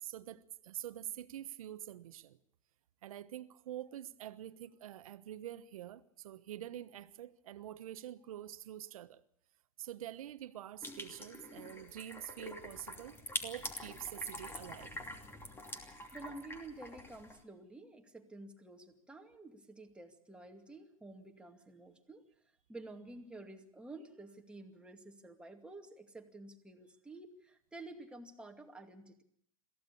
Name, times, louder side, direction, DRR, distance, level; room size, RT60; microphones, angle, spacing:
voice 1, 0.0-2.4 3.0-9.2 9.8-14.9, right 12 dB, 75° right, 1.2 m, -46 dB
sound 1, 10.8-17.4, left 1 dB, 15° left, 2.9 m, -45 dB
voice 2, 16.1-22.2 22.7-29.2, right 2 dB, 5° right, 2.4 m, -51 dB
22.5 x 15.5 x 8.5 m
hypercardioid pair, 125°, 18 cm